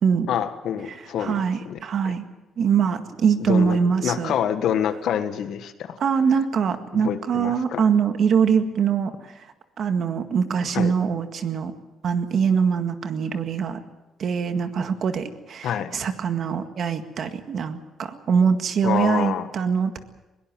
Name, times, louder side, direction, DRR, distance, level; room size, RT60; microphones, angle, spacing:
voice 1, 0.3-1.8 2.0-2.2 3.5-6.0 6.9-7.8 10.7-10.9 15.6-15.9 18.8-19.5, left 9 dB, 70° left, 10 dB, 1.6 m, -27 dB
voice 2, 1.2-2.3 2.6-4.3 6.0-9.1 9.8-11.7 12.0-13.8 14.2-20.0, right 6 dB, 50° right, 8 dB, 1.9 m, -23 dB
21.5 x 18.5 x 7.7 m, 1.0 s
cardioid pair, 125°, 0 cm